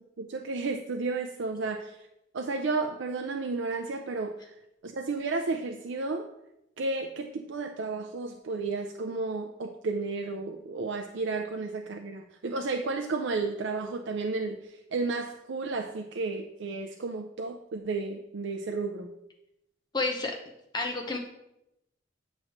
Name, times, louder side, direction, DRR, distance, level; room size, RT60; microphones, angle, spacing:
voice 1, 0.2-2.0 2.3-4.5 4.8-6.3 6.8-19.1, right 3 dB, 70° right, 4 dB, 0.4 m, -32 dB
voice 2, 19.9-20.3 20.7-21.2, left 3 dB, 20° left, 1 dB, 0.7 m, -29 dB
8.7 x 3.1 x 6.4 m, 0.87 s
head